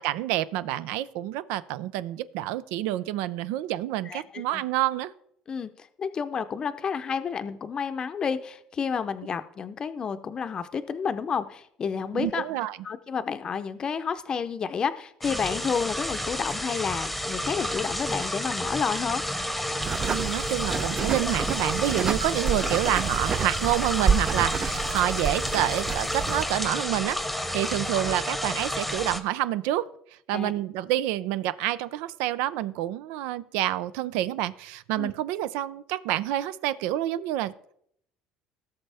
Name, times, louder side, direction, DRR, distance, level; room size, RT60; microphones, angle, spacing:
voice 1, 0.0-5.1 12.1-12.8 20.1-27.2 27.5-29.9 30.3-37.5, right 13 dB, 80° right, 16 dB, 0.5 m, -28 dB
voice 2, 4.1-4.6 5.5-12.4 12.8-19.2 30.3-30.5 35.0-35.1, left 6 dB, 30° left, 11 dB, 0.7 m, -30 dB
sound 1, 15.2-29.2, equal, ahead, 0.9 m, -30 dB
sound 2, 19.8-26.5, right 6 dB, 30° right, 0.5 m, -29 dB
16.5 x 6.6 x 3.4 m, 0.70 s
cardioid pair, 125°, 3 cm